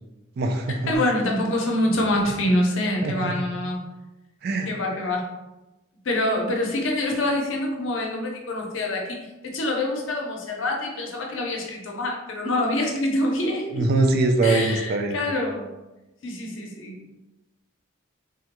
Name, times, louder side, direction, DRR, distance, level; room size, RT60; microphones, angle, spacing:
voice 1, 0.4-0.9 3.0-3.3 4.4-4.7 13.7-15.2, right 2 dB, 50° right, 6 dB, 0.3 m, -22 dB
voice 2, 0.9-3.8 4.7-5.3 6.0-13.8 14.4-15.7 16.2-17.0, left 1 dB, 70° left, 1 dB, 0.6 m, -25 dB
3.5 x 2.2 x 2.9 m, 1.1 s
head